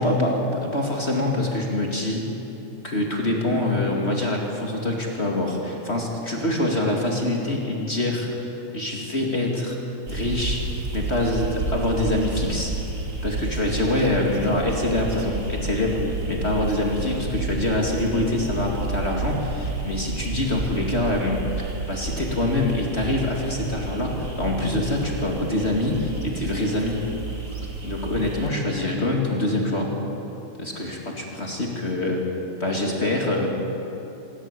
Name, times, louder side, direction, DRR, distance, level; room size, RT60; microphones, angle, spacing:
voice 1, 0.0-2.3 2.8-9.8 10.1-10.6 10.9-12.7 13.2-16.0 16.3-27.0 27.8-29.9 30.6-32.2 32.6-33.5, left 1 dB, 35° left, 0 dB, 1.0 m, -25 dB
sound 1, 10.1-28.5, right 3 dB, 30° right, 1.7 m, -31 dB
25.5 x 14.0 x 9.8 m, 3.0 s
omnidirectional pair, 5.2 m